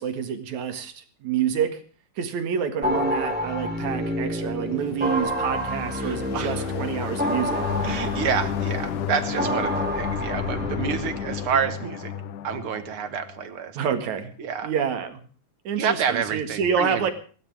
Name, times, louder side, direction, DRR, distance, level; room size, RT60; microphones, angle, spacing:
voice 1, 0.0-1.8 2.2-7.7 13.7-14.3 14.6-15.2 15.6-17.1, right 7 dB, 75° right, 9 dB, 3.2 m, -28 dB
sound 1, 2.8-11.6, equal, 5° right, 3.0 m, -29 dB
sound 2, 4.8-13.5, left 9 dB, 85° left, 2.4 m, -32 dB
voice 2, 6.0-6.7 7.8-12.1 12.4-13.8 14.4-14.7 15.8-17.1, right 7 dB, 50° right, 11 dB, 2.2 m, -28 dB
21.0 x 16.5 x 3.5 m, 0.39 s
omnidirectional pair, 3.4 m